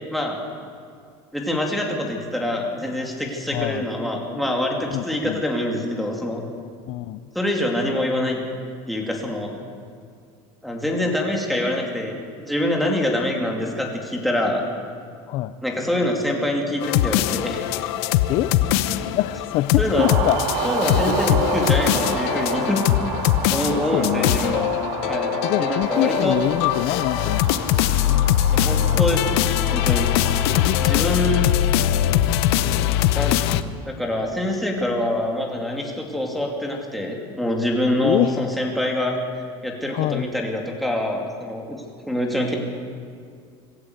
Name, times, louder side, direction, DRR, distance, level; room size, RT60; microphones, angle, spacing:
voice 1, 1.3-6.4 7.3-8.4 8.9-9.5 10.6-14.6 15.6-17.6 19.8-20.1 20.6-22.8 23.5-24.7 25.1-25.3 25.6-26.4 28.5-29.4 29.7-30.1 30.8-31.5 33.2-33.4 33.9-39.2 39.6-41.8 42.1-42.5, left 1 dB, ahead, -1 dB, 2.6 m, -25 dB
voice 2, 3.5-3.9 4.9-5.4 6.9-7.2 15.3-15.6 18.3-18.8 19.1-20.4 21.1-21.2 23.7-24.5 25.4-27.9 30.5-30.9 31.5-32.1 32.6-33.1 38.0-38.4 39.9-40.3, left 15 dB, 45° left, 13 dB, 0.5 m, -25 dB
sound 1, 16.8-33.6, left 12 dB, 85° left, 0.9 m, -22 dB
sound 2, 20.0-31.0, right 6 dB, 60° right, 2.8 m, -30 dB
25.5 x 14.0 x 8.0 m, 2.2 s
cardioid pair, 175°, 13 cm